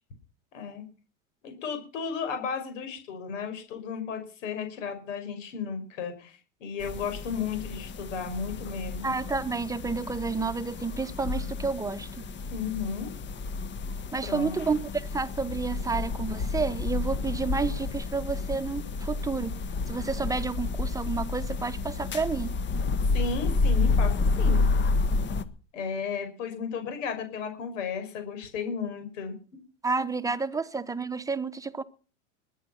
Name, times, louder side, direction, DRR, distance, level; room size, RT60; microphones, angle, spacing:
voice 1, 0.5-0.8 1.4-6.3 6.6-9.2 12.5-13.1 14.2-14.6 23.1-24.7 25.7-29.4, left 6 dB, 80° left, 5.9 m, -34 dB
sound 1, 6.8-25.4, left 3 dB, 30° left, 1.4 m, -30 dB
voice 2, 9.0-12.1 14.1-19.6 19.9-22.6 29.8-31.8, right 4 dB, 10° right, 1.1 m, -30 dB
21.0 x 10.0 x 5.9 m
hypercardioid pair, 105°, 37 cm